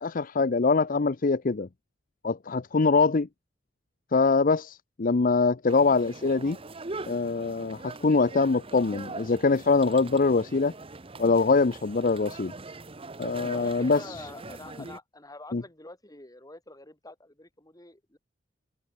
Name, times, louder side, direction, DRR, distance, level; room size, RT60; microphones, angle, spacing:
voice 1, 0.0-1.7 2.2-3.3 4.1-6.6 7.1-10.7 11.2-12.5 13.2-14.0 15.5-15.6, left 4 dB, 45° left, 0.6 m, -23 dB
sound 1, 5.7-15.0, right 3 dB, 30° right, 1.1 m, -42 dB
voice 2, 13.5-18.2, left 2 dB, 20° left, 4.8 m, -47 dB
head